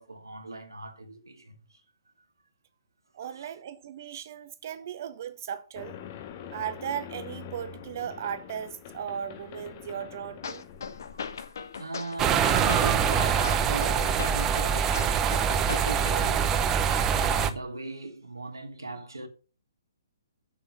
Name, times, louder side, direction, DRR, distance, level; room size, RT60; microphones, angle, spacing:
voice 1, 0.0-1.8 3.3-3.5 11.5-15.4 15.6-16.6 17.1-19.3, right 2 dB, 75° right, 2.1 m, -38 dB
voice 2, 3.1-6.0 6.5-10.6, right 9 dB, 45° right, 1.2 m, -37 dB
sound 1, 5.8-11.8, left 8 dB, 35° left, 1.3 m, -44 dB
sound 2, 10.4-16.4, left 6 dB, 55° left, 1.1 m, -39 dB
sound 3, 12.2-17.5, right 7 dB, 20° right, 0.7 m, -24 dB
7.6 x 6.9 x 7.1 m
figure-of-eight pair, 125°, 2 cm